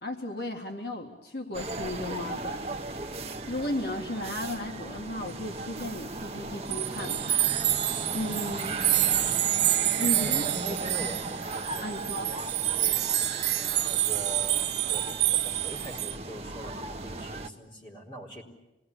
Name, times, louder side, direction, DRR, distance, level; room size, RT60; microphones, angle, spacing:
voice 1, 0.0-2.7 3.5-7.4 8.1-8.8 10.0-10.4 10.9-11.0 11.8-12.3, left 1 dB, 65° left, 2 dB, 2.0 m, -35 dB
sound 1, 1.5-17.5, right 2 dB, 35° right, 1.0 m, -37 dB
sound 2, 6.7-16.2, right 13 dB, 75° right, 0.9 m, -28 dB
voice 2, 9.0-9.7 10.1-13.1 13.6-18.4, right 1 dB, 25° left, 0 dB, 4.4 m, -42 dB
26.5 x 20.5 x 10.0 m, 0.98 s
head